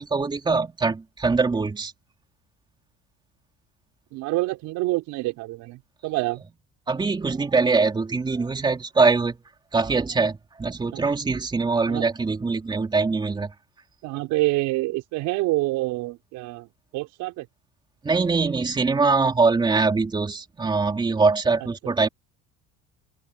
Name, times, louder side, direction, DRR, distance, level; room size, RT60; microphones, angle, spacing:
voice 1, 0.0-1.9 6.9-9.3 9.7-13.5 18.0-22.1, right 4 dB, 15° right, 3.4 m, -23 dB
voice 2, 4.1-6.4 10.9-11.0 11.8-12.1 14.0-17.5, right 19 dB, 70° right, 5.7 m, -27 dB
open air
cardioid pair, 155°, 31 cm